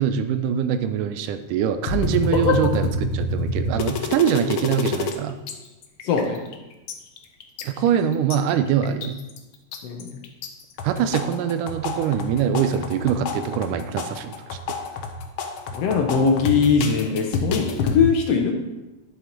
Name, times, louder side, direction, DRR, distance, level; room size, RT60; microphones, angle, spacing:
voice 1, 0.0-5.4 7.6-9.2 10.8-14.6, right 8 dB, 90° right, 10 dB, 2.2 m, -23 dB
sound 1, 1.9-5.1 5.5-5.6 5.8-6.5 6.9-8.4 8.8-9.4 9.7-10.5 10.8-18.0, left 3 dB, 85° left, 1.1 m, -27 dB
voice 2, 6.0-6.4 9.8-10.1 15.7-18.5, left 6 dB, 65° left, 3 dB, 1.7 m, -21 dB
11.0 x 7.1 x 4.5 m, 1.1 s
omnidirectional pair, 3.5 m